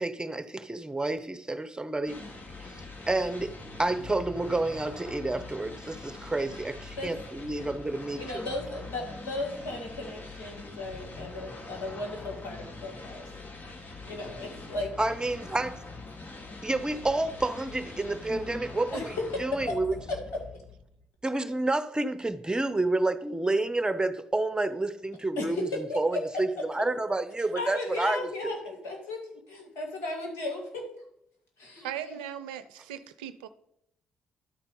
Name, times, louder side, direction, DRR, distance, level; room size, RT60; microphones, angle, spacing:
voice 1, 0.0-2.2 3.1-8.4 15.0-15.8 16.6-19.1 19.4-19.9 21.2-28.5, right 2 dB, 20° right, 0.8 m, -29 dB
sound 1, 2.1-21.1, left 3 dB, 45° left, 1.6 m, -43 dB
voice 2, 8.1-13.3 14.0-14.9 18.3-18.6 18.9-19.8 20.1-20.2 25.4-26.2 27.5-29.2 29.5-30.9 31.6-32.2, left 2 dB, 75° left, 2.1 m, -35 dB
voice 3, 31.8-33.5, right 10 dB, 85° right, 0.5 m, -38 dB
11.5 x 4.3 x 5.4 m
hypercardioid pair, 45°, 5 cm